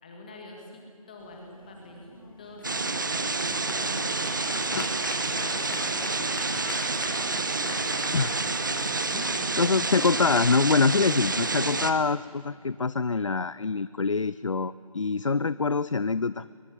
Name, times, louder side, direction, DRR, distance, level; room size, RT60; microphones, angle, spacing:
voice 1, 0.0-4.1 4.6-8.5, left 2 dB, 15° left, 1 dB, 1.8 m, -47 dB
sound 1, 1.2-11.3, left 2 dB, 35° left, 3.7 m, -42 dB
sound 2, 2.6-11.9, right 3 dB, 35° right, 1.1 m, -29 dB
voice 2, 9.1-16.5, left 4 dB, 55° left, 17 dB, 0.5 m, -25 dB
22.5 x 19.5 x 10.0 m, 2.5 s
figure-of-eight pair, 175°, 19 cm